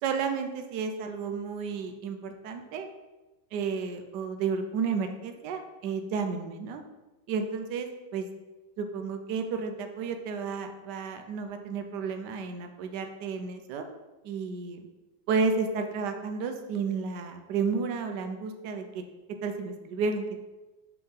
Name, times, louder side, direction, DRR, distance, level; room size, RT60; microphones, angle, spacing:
voice 1, 0.0-2.9 3.5-6.8 7.3-8.3 8.8-13.8 14.2-14.9 15.3-19.0 19.4-20.4, right 5 dB, 70° right, 6 dB, 1.2 m, -32 dB
7.0 x 3.6 x 5.6 m, 1.1 s
omnidirectional pair, 2.1 m